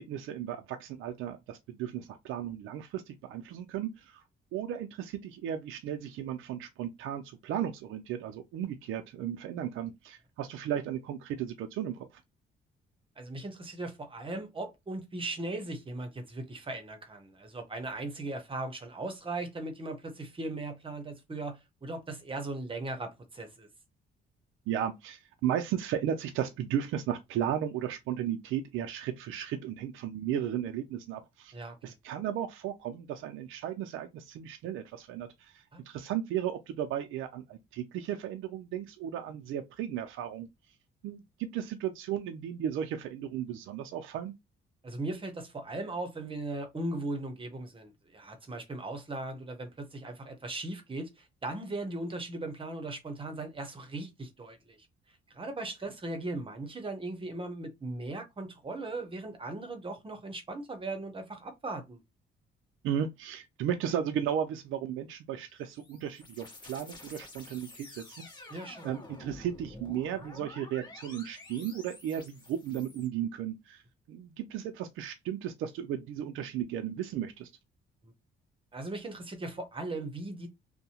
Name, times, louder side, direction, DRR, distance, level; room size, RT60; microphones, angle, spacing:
voice 1, 0.0-4.2 4.5-12.2 24.7-31.5 31.8-40.5 41.0-44.4 62.8-68.3 68.8-73.8 74.1-77.5, right 10 dB, 85° right, 0.4 m, -35 dB
voice 2, 13.2-23.7 31.5-31.9 35.7-35.8 44.8-54.8 55.3-62.0 68.5-68.9 78.0-78.1 78.7-80.5, right 2 dB, 25° right, 0.8 m, -38 dB
sound 1, 65.4-73.1, left 2 dB, 20° left, 1.2 m, -50 dB
2.7 x 2.1 x 2.8 m
cardioid pair, 90°, 20 cm